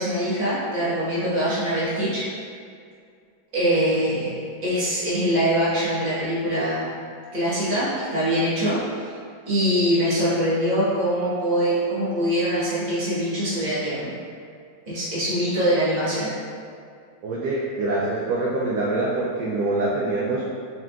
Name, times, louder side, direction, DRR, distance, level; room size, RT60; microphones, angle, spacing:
voice 1, 0.0-2.3 3.5-4.3 4.6-6.9 7.3-9.1 9.5-14.1 14.9-16.3, equal, 25° right, -11 dB, 1.1 m, -23 dB
voice 2, 17.2-20.5, right 2 dB, 70° right, -5 dB, 1.0 m, -25 dB
4.3 x 3.8 x 2.3 m, 2.3 s
omnidirectional pair, 2.1 m